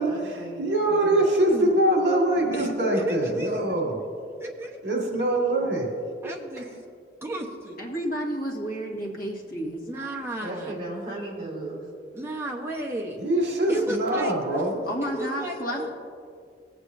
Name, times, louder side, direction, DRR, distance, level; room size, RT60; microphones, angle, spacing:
voice 1, 0.0-1.3 10.4-11.9, right 1 dB, 30° right, -6 dB, 2.5 m, -36 dB
voice 2, 0.6-4.0 4.8-5.9 13.2-14.7, right 1 dB, 70° right, -1 dB, 2.0 m, -23 dB
voice 3, 2.5-3.8 4.4-4.8 6.2-6.7 7.2-7.8 9.8-10.7 12.1-13.2 13.7-14.7 15.0-15.9, right 1 dB, 15° right, -1 dB, 1.1 m, -33 dB
voice 4, 7.8-9.8 14.8-15.9, equal, 50° left, -1 dB, 1.6 m, -31 dB
17.5 x 8.0 x 2.7 m, 2.2 s
head